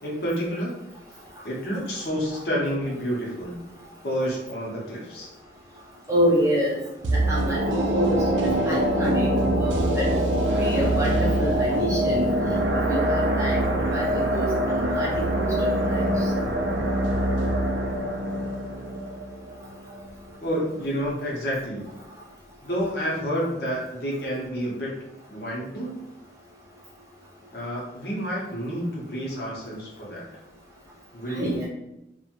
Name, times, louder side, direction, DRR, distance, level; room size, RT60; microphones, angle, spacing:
voice 1, 0.0-0.7 1.4-3.6 4.0-5.3 20.4-21.8 22.6-24.9 25.3-26.1 27.5-30.3 31.1-31.6, equal, 60° left, -4 dB, 0.7 m, -29 dB
voice 2, 6.1-6.8 7.0-7.6 7.9-8.2 8.7-9.3 9.5-12.3 12.9-16.3 31.3-31.7, equal, 15° right, -6 dB, 0.6 m, -27 dB
sound 1, 7.0-20.1 20.5-20.6, right 1 dB, 80° right, 0.4 m, -24 dB
2.9 x 2.1 x 2.5 m, 0.89 s
head